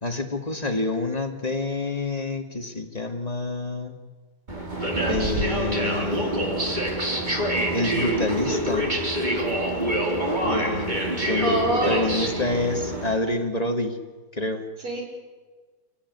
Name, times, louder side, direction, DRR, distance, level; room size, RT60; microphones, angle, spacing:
voice 1, 0.0-3.9 5.1-6.6 7.7-8.9 10.4-11.0 11.3-14.0 14.4-14.6, left 2 dB, 20° left, 4 dB, 2.1 m, -27 dB
sound 1, 4.5-13.1, right 1 dB, 20° right, 3.4 m, -26 dB
voice 2, 11.4-12.4 14.8-15.0, right 1 dB, 90° right, 0 dB, 6.8 m, -25 dB
27.0 x 17.0 x 9.6 m, 1.3 s
omnidirectional pair, 2.3 m